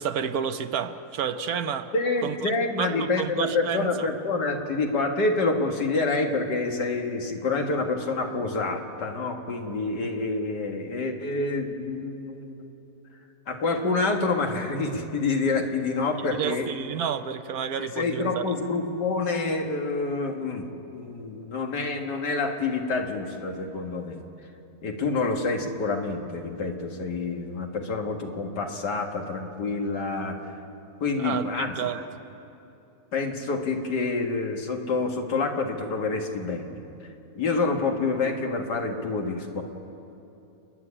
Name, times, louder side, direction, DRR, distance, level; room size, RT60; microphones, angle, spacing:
voice 1, 0.0-1.9 2.2-2.5 2.8-4.1 16.3-18.4 31.2-32.0, right 7 dB, 65° right, 10 dB, 1.2 m, -30 dB
voice 2, 1.9-12.7 13.5-16.7 17.8-20.7 20.9-24.2 24.8-30.4 31.0-31.8 33.1-36.8 37.4-39.6, left 3 dB, 85° left, 3 dB, 2.3 m, -27 dB
29.0 x 10.5 x 9.8 m, 2.8 s
omnidirectional pair, 1.8 m